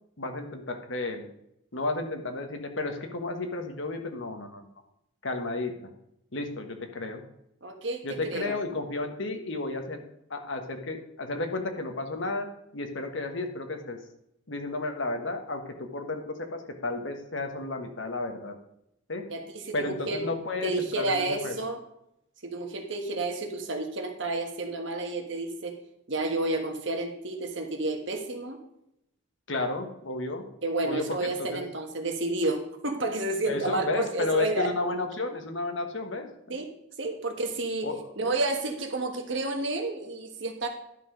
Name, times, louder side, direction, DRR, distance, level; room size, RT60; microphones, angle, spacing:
voice 1, 0.2-1.3 1.7-4.6 5.2-5.7 6.3-7.2 8.0-10.0 10.3-12.5 12.7-14.0 14.5-18.5 19.1-19.2 19.7-21.5 29.5-30.4 30.8-31.6 33.4-36.6 37.8-38.1, left 2 dB, 65° left, 5 dB, 1.4 m, -32 dB
voice 2, 7.6-8.6 19.3-20.2 20.6-21.8 22.4-25.8 26.1-28.6 30.6-34.7 36.5-36.7 37.0-37.9 38.2-40.7, right 2 dB, 60° right, 4 dB, 1.5 m, -30 dB
11.0 x 6.0 x 5.1 m, 0.80 s
head